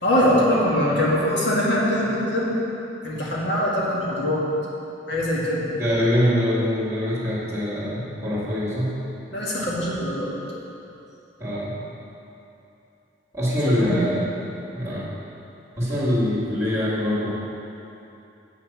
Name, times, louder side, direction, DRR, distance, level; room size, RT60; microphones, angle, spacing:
voice 1, 0.0-2.6 3.0-4.5 5.1-5.6 9.3-10.4 13.7-14.1, left 1 dB, 65° left, -6 dB, 2.0 m, -22 dB
voice 2, 5.8-8.9 11.4-11.7 13.3-14.2 14.7-15.1 15.8-17.3, equal, 15° right, -7 dB, 2.4 m, -23 dB
7.9 x 6.2 x 7.5 m, 2.8 s
head